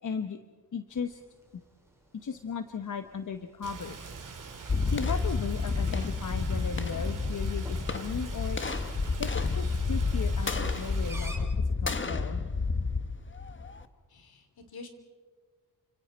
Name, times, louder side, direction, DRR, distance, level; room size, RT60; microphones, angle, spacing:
voice 1, 0.0-0.4 0.7-1.2 1.5-1.6 2.2-4.2 4.9-8.6 9.2-12.4, left 6 dB, 55° left, 8 dB, 1.1 m, -36 dB
sound 1, 0.9-11.4, right 1 dB, 5° right, 4.3 m, -52 dB
Rain, 3.6-11.2, right 5 dB, 55° right, 2.9 m, -43 dB
sound 2, 4.7-13.8, left 4 dB, 30° left, 1.2 m, -30 dB
voice 2, 14.1-14.9, left 3 dB, 70° left, 6 dB, 3.3 m, -47 dB
29.5 x 26.0 x 4.3 m, 1.5 s
wide cardioid pair, 105°, 38 cm